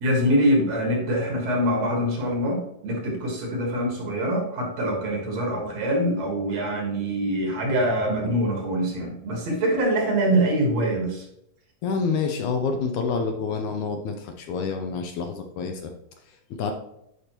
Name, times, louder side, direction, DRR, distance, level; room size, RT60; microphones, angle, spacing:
voice 1, 0.0-11.3, right 1 dB, 60° right, 1 dB, 2.2 m, -24 dB
voice 2, 11.8-15.9 16.5-16.7, left 5 dB, 75° left, 4 dB, 1.9 m, -27 dB
10.5 x 5.1 x 2.9 m, 0.80 s
omnidirectional pair, 3.8 m